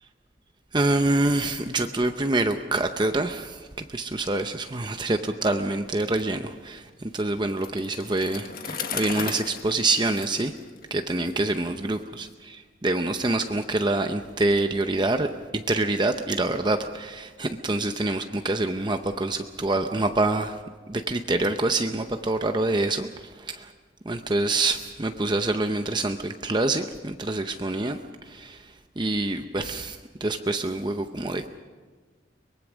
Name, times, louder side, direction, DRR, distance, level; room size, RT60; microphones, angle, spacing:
voice 1, 0.7-10.5 10.9-20.6 20.9-23.7 24.0-31.6, right 2 dB, 25° right, 7 dB, 0.7 m, -26 dB
Bicycle, 7.5-11.3, left 6 dB, 50° left, 1.5 m, -36 dB
23.5 x 22.0 x 6.2 m, 1.4 s
head